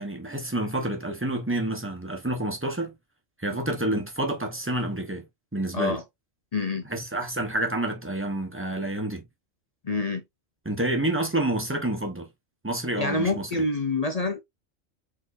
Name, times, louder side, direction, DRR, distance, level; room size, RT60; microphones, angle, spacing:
voice 1, 0.0-2.9 3.4-5.3 5.5-6.0 6.8-9.2 10.6-12.3 12.6-13.5, right 1 dB, 10° right, 1.1 m, -28 dB
voice 2, 6.5-6.9 9.8-10.2 13.0-14.4, left 3 dB, 40° left, 0.6 m, -26 dB
4.5 x 3.7 x 2.6 m
omnidirectional pair, 1.3 m